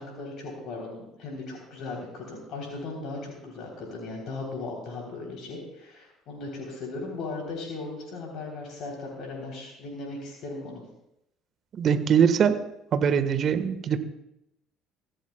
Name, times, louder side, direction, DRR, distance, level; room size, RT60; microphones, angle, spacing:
voice 1, 0.0-10.8, left 3 dB, 60° left, -1 dB, 3.6 m, -37 dB
voice 2, 11.8-12.6 12.9-14.0, right 7 dB, 50° right, 9 dB, 1.5 m, -22 dB
23.5 x 15.5 x 2.3 m, 0.83 s
hypercardioid pair, 60°, 0 cm